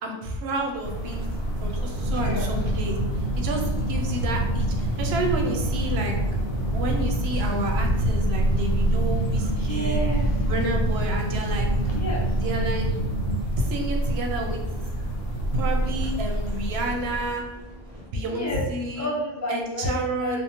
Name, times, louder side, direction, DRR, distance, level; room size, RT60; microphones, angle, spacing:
voice 1, 0.0-1.3 1.6-6.1 6.7-10.0 10.5-11.9 12.4-12.9 13.6-14.6 15.5-17.4 18.1-19.1 19.5-20.4, right 1 dB, 80° right, 2 dB, 0.8 m, -30 dB
sound 1, 0.5-18.1, equal, 40° right, 0.7 m, -38 dB
sound 2, 0.8-17.5, right 1 dB, 70° left, 0.7 m, -29 dB
sound 3, 1.9-13.4, right 1 dB, 5° left, 1.1 m, -28 dB
voice 2, 2.1-2.5 9.6-10.3 11.9-12.3 18.1-18.6 19.0-20.4, equal, 25° left, -3 dB, 0.4 m, -31 dB
2.6 x 2.0 x 2.8 m, 1.0 s
omnidirectional pair, 1.0 m